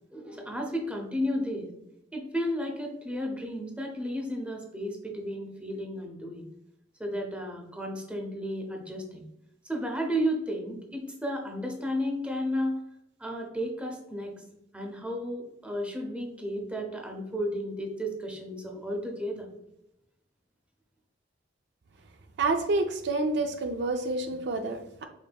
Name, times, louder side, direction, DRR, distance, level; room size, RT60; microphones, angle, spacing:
voice 1, 0.0-1.7 2.1-6.5 7.0-9.2 9.7-12.8 13.2-14.3 14.7-19.5, equal, 5° right, 1 dB, 0.6 m, -33 dB
voice 2, 22.4-25.1, right 3 dB, 60° right, 6 dB, 0.4 m, -28 dB
5.1 x 3.3 x 2.2 m, 0.85 s
head